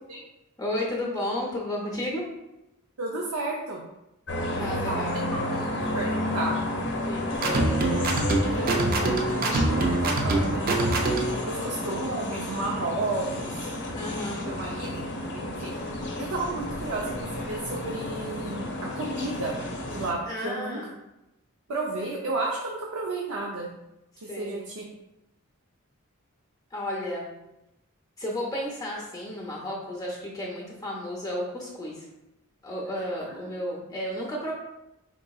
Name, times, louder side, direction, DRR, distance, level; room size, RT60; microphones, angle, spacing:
voice 1, 0.6-2.2 4.5-5.2 6.9-7.3 13.9-14.4 20.3-20.9 24.3-24.7 26.7-27.3 28.2-32.0 32.6-34.5, left 1 dB, 15° left, -2 dB, 0.6 m, -33 dB
voice 2, 3.0-3.8 4.6-6.5 7.4-10.9 11.5-14.0 14.5-15.8 16.2-19.5 19.9-20.8 21.7-23.7 24.2-24.9 33.3-33.5, right 2 dB, 85° right, -2 dB, 0.6 m, -33 dB
sound 1, 4.3-20.1, left 1 dB, 55° left, 0.6 m, -32 dB
sound 2, 7.4-11.4, right 2 dB, 40° right, 0.4 m, -25 dB
3.8 x 3.7 x 2.3 m, 0.91 s
head